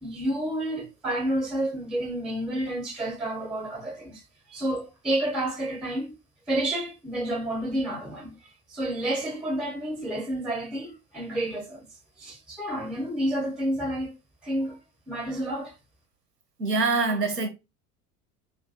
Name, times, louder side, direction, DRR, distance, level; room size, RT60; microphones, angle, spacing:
voice 1, 0.0-4.2 4.5-6.1 6.5-8.3 8.7-11.9 12.2-14.1 14.4-14.8 15.1-15.7, right 1 dB, ahead, 0.4 m, -30 dB
voice 2, 16.6-17.5, right 3 dB, 90° right, 0.6 m, -24 dB
2.2 x 2.2 x 2.5 m
figure-of-eight pair, 70°, 47 cm